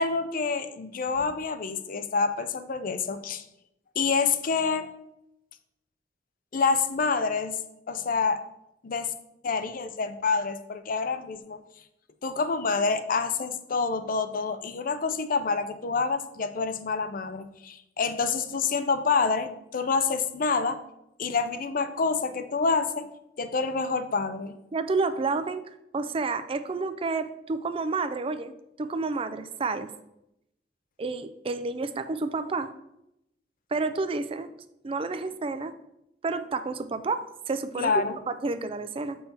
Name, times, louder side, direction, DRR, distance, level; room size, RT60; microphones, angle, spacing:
voice 1, 0.0-3.4 4.0-4.9 6.5-7.6 7.9-8.4 8.8-9.1 9.4-11.6 12.2-20.8 21.2-23.1 23.4-24.5 37.8-38.2, left 4 dB, 50° left, 10 dB, 0.5 m, -27 dB
voice 2, 24.7-25.6 25.9-28.5 28.8-29.9 31.0-32.7 33.7-34.5 34.8-35.7 36.2-39.2, right 3 dB, 30° right, 11 dB, 0.4 m, -30 dB
7.2 x 5.5 x 4.2 m, 0.83 s
head